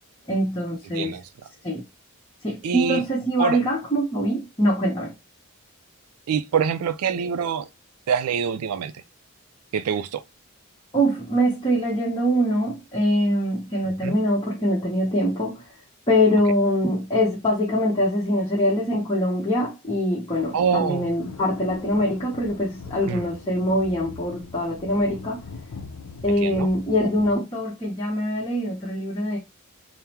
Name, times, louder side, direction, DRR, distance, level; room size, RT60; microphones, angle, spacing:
voice 1, 0.3-1.1 1.6-1.8 2.4-5.1 10.9-15.6 16.1-25.4 26.2-29.4, equal, 20° left, 1.0 m, -23 dB
voice 2, 2.6-3.0 3.4-3.6 6.3-7.7 8.1-8.9 9.7-10.2 14.0-14.1 20.5-21.1 23.1-23.2 26.4-26.7, right 7 dB, 85° right, 0.4 m, -25 dB
sound 1, 20.3-27.4, left 4 dB, 80° left, 0.5 m, -41 dB
3.5 x 2.1 x 4.3 m
head